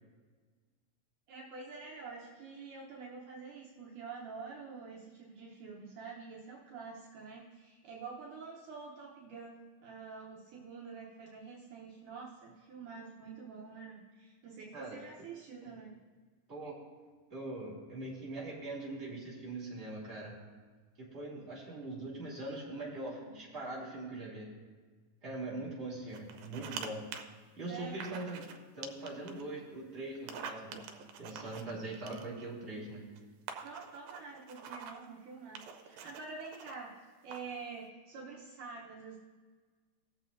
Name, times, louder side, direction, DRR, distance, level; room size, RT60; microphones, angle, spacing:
voice 1, 1.3-16.0 27.7-28.0 33.6-37.0 37.2-39.2, right 4 dB, 70° right, -3 dB, 2.3 m, -47 dB
voice 2, 17.3-20.3 21.1-24.5 25.2-27.1 27.6-28.5 28.7-30.8 31.2-33.0, right 2 dB, 20° right, -7 dB, 2.9 m, -42 dB
sound 1, 26.1-26.9 27.1-27.2 28.0-28.6 28.8-29.4 30.2-32.5 33.2-33.3 33.5-35.1 35.6-36.7 37.3-37.6, right 6 dB, 90° right, 2.5 m, -46 dB
19.0 x 7.3 x 2.6 m, 1.5 s
omnidirectional pair, 4.0 m